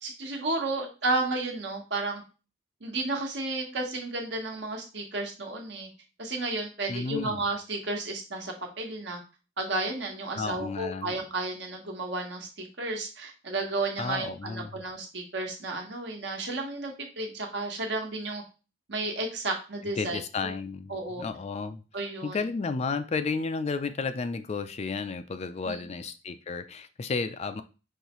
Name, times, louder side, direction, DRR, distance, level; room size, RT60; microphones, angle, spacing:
voice 1, 0.0-2.2 2.8-5.9 6.2-9.2 9.6-18.4 18.9-20.5 20.9-21.2 21.9-22.4 25.6-25.8, right 2 dB, 70° right, 2 dB, 1.2 m, -32 dB
voice 2, 6.9-7.4 10.3-11.1 14.0-14.7 20.0-21.8 22.2-27.6, left 4 dB, 35° left, 10 dB, 0.4 m, -32 dB
5.5 x 3.2 x 3.0 m, 0.32 s
head